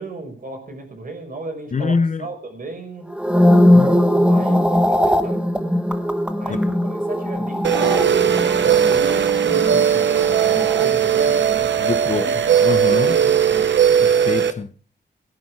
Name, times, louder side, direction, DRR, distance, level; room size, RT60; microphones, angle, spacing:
voice 1, 0.0-3.1 4.3-5.4 6.4-12.3 12.9-13.7, right 3 dB, 45° right, 5.6 m, -34 dB
voice 2, 1.7-2.3 3.7-4.3 11.8-12.3 12.6-13.1 14.0-14.7, left 4 dB, 40° left, 0.8 m, -24 dB
sound 1, 3.1-11.5 11.7-12.1, left 1 dB, 5° right, 1.2 m, -20 dB
sound 2, 7.6-14.5, right 8 dB, 65° right, 0.9 m, -18 dB
17.5 x 10.5 x 4.8 m
wide cardioid pair, 105°, 20 cm